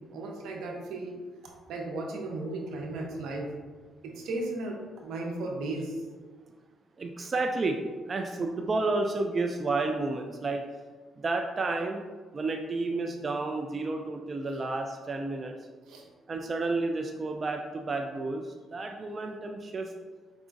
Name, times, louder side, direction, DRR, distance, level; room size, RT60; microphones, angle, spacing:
voice 1, 0.1-1.2 1.4-3.5 4.0-6.0 15.9-16.1, right 2 dB, 85° right, 1 dB, 0.8 m, -35 dB
voice 2, 7.0-10.6 11.2-12.0 12.3-15.5 16.3-19.9, right 3 dB, 35° right, 3 dB, 0.3 m, -31 dB
4.9 x 3.6 x 2.5 m, 1.4 s
cardioid pair, 90°, 0 cm